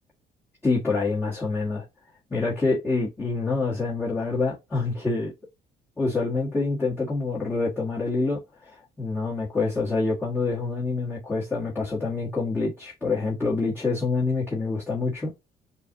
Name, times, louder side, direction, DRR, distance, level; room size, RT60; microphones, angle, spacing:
voice 1, 0.6-1.8 2.3-5.3 6.0-15.3, left 3 dB, 15° left, 1.6 m, -26 dB
6.7 x 2.5 x 2.7 m
cardioid pair, 110°, 17 cm